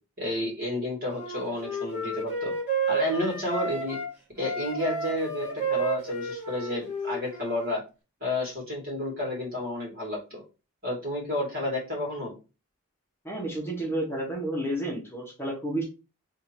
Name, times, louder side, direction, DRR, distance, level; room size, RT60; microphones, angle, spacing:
voice 1, 0.2-2.5 2.9-4.0 4.3-7.8 8.2-10.4 10.8-12.3, left 1 dB, 40° right, -2 dB, 2.2 m, -31 dB
Wind instrument woodwind instrument, 1.2-4.1 4.4-7.7, right 3 dB, 10° right, 1.7 m, -31 dB
voice 2, 13.2-15.8, right 1 dB, 10° left, -4 dB, 1.2 m, -31 dB
3.6 x 2.8 x 4.5 m, 0.30 s
head